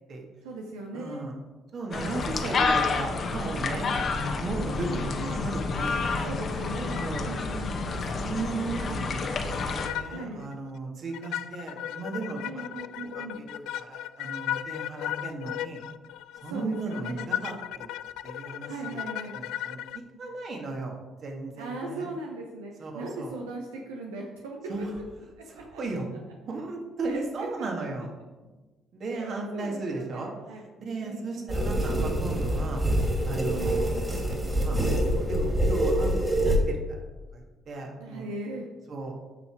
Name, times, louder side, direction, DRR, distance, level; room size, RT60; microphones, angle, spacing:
voice 1, 0.4-1.3 4.5-5.4 6.2-7.7 10.1-10.4 12.4-13.4 16.4-17.3 18.7-19.4 21.6-24.9 25.7-25.8 27.1-27.7 29.1-30.6 31.0-31.6 33.5-33.8 38.0-38.7, right 2 dB, 90° right, -1 dB, 0.9 m, -38 dB
voice 2, 0.9-1.4 1.7-6.3 7.0-7.3 7.8-12.9 13.3-15.8 16.4-17.9 18.2-19.0 19.3-22.1 22.8-23.3 24.7-25.0 25.5-26.1 26.4-28.1 28.9-30.3 30.8-32.8 33.2-37.0 37.3-38.3 38.9-39.2, right 3 dB, 55° right, 0 dB, 2.2 m, -36 dB
sound 1, 1.9-9.9, left 4 dB, 50° left, 1.2 m, -29 dB
sound 2, 9.5-10.2 10.5-10.6 11.1-20.0, left 12 dB, 75° left, 0.3 m, -35 dB
sound 3, 31.5-36.6, right 1 dB, 20° right, 2.6 m, -26 dB
8.7 x 6.0 x 4.8 m, 1.2 s
hypercardioid pair, 55°, 0 cm